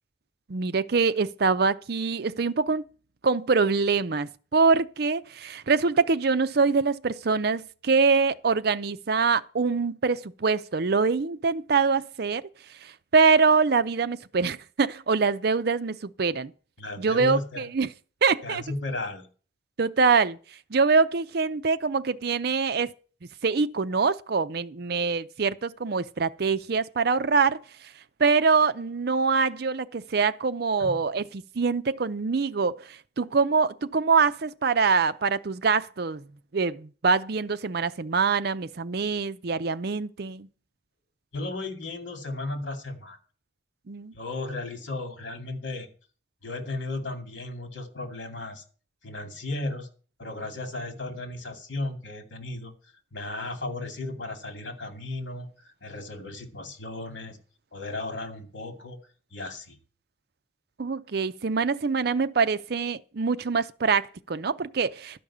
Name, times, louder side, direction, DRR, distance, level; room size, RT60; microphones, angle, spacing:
voice 1, 0.5-2.9 3.2-12.5 12.8-16.5 17.0-17.9 18.2-18.6 19.8-20.4 20.7-22.9 23.4-27.9 28.2-36.2 36.5-40.5 43.9-44.1 60.8-65.2, right 4 dB, 55° right, 0.5 m, -24 dB
voice 2, 16.8-17.7 18.4-19.3 30.8-31.0 41.3-43.2 44.1-45.9 46.4-48.6 49.0-49.9 50.2-52.7 53.1-57.4 57.7-59.0 59.3-59.8, left 2 dB, 75° left, 2.5 m, -35 dB
12.5 x 5.3 x 8.5 m
head